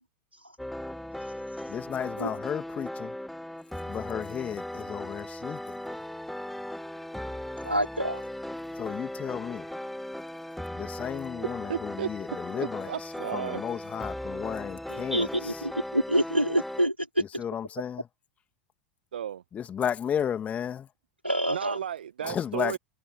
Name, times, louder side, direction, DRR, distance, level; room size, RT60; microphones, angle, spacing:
sound 1, 0.6-16.9, left 1 dB, ahead, 2.1 m, -38 dB
voice 1, 1.7-3.1 3.9-5.6 8.8-9.6 10.7-12.9 13.3-15.5 17.4-18.0 19.5-20.9 22.2-22.8, left 8 dB, 25° left, 2.9 m, -33 dB
voice 2, 7.6-8.2 14.9-17.2 21.2-21.8, equal, 90° right, 5.1 m, -27 dB
voice 3, 11.1-12.1 12.6-13.6 19.1-19.4 21.5-22.8, right 9 dB, 65° right, 1.6 m, -34 dB
figure-of-eight pair, 85°, 6 cm